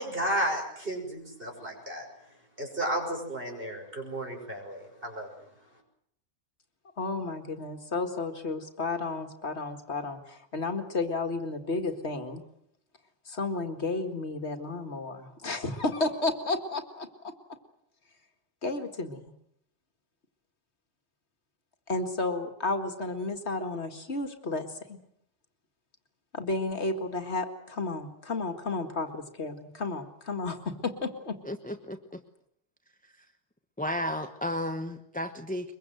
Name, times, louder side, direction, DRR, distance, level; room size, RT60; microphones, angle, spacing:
voice 1, 0.0-2.1 2.6-5.3, right 1 dB, 50° right, 2 dB, 6.6 m, -33 dB
voice 2, 7.0-12.4 13.3-17.4 18.6-19.3 21.9-25.0 26.3-31.4, left 3 dB, 65° left, 7 dB, 2.2 m, -32 dB
voice 3, 31.4-32.2 33.0-33.2 33.8-35.7, left 1 dB, 5° left, 7 dB, 1.0 m, -34 dB
23.5 x 22.5 x 7.9 m, 0.72 s
omnidirectional pair, 1.2 m